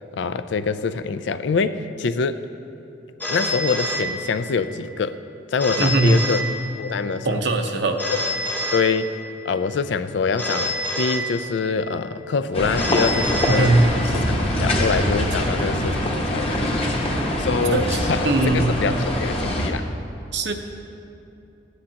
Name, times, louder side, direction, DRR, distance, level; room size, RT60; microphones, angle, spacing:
voice 1, 0.1-2.4 3.3-5.2 5.5-6.4 6.8-7.4 8.1-8.2 8.7-9.2 9.4-13.8 14.1-16.8 17.4-19.8, left 5 dB, 70° left, 12 dB, 0.4 m, -25 dB
Telephone, 3.2-4.7 5.6-7.1 8.0-9.5 10.4-11.9 12.8-14.3, equal, 10° left, 0.7 m, -28 dB
voice 2, 5.8-6.2 7.2-8.0 13.5-13.8 17.7-18.0 18.2-18.7 20.3-20.5, right 2 dB, 65° right, 5 dB, 0.8 m, -19 dB
sound 1, 12.5-19.7, left 1 dB, 30° left, 1.0 m, -23 dB
14.5 x 9.9 x 2.9 m, 2.7 s
head